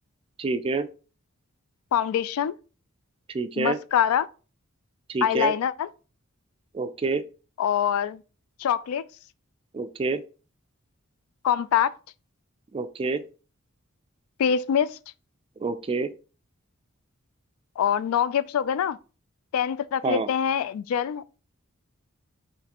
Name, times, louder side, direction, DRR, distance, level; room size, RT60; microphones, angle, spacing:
voice 1, 0.4-0.9 3.3-3.8 5.1-5.5 6.7-7.2 9.7-10.2 12.7-13.2 15.6-16.1 20.0-20.3, right 3 dB, 25° right, 0.3 m, -27 dB
voice 2, 1.9-2.6 3.6-4.3 5.2-5.9 7.6-8.2 8.6-9.0 11.4-12.0 14.4-15.0 17.8-19.0 19.5-21.3, left 8 dB, 85° left, 0.3 m, -24 dB
4.1 x 3.1 x 2.9 m
head